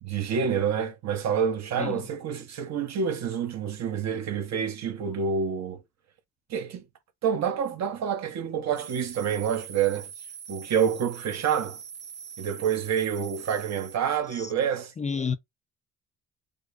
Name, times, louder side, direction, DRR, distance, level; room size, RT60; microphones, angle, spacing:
voice 1, 0.0-5.8 6.5-6.8 7.2-10.1 10.5-11.8 12.4-14.9, right 7 dB, 60° right, 0.9 m, -28 dB
sound 1, 8.8-14.0, right 7 dB, 35° right, 0.5 m, -43 dB
voice 2, 15.0-15.4, left 6 dB, 25° left, 0.4 m, -30 dB
5.0 x 2.0 x 2.5 m
cardioid pair, 90°, 30 cm